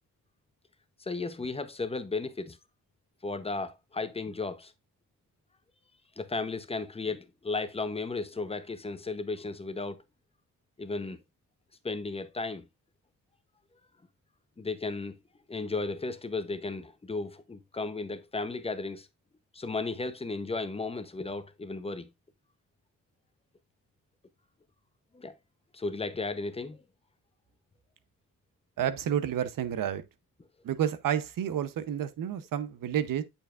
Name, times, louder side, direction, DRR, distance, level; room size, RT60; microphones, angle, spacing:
voice 1, 1.0-2.6 3.2-4.7 6.2-10.0 10.8-11.2 11.8-12.6 14.6-15.1 15.5-19.1 19.5-22.1 25.1-25.3 25.7-26.8, left 3 dB, 20° left, 0.8 m, -34 dB
voice 2, 28.8-30.0 30.6-33.2, right 9 dB, 80° right, 0.9 m, -30 dB
8.2 x 7.0 x 2.4 m
wide cardioid pair, 125°, 33 cm